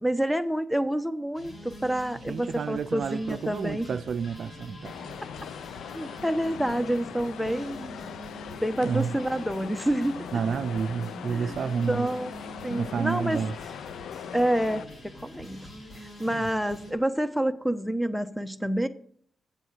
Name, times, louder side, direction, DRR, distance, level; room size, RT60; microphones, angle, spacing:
voice 1, 0.0-4.0 5.9-8.0 8.6-10.2 11.3-11.5 11.9-12.3 12.6-13.4 14.3-15.7 16.0-18.9, right 1 dB, ahead, 0.9 m, -28 dB
sound 1, 1.3-16.9, equal, 55° left, 4.6 m, -44 dB
voice 2, 2.3-5.0 8.8-9.2 10.3-12.1 12.7-13.6 16.3-16.5, right 6 dB, 70° right, 0.4 m, -30 dB
sound 2, 4.8-14.9, left 9 dB, 90° left, 0.4 m, -41 dB
7.9 x 7.0 x 7.4 m
cardioid pair, 60°, 0 cm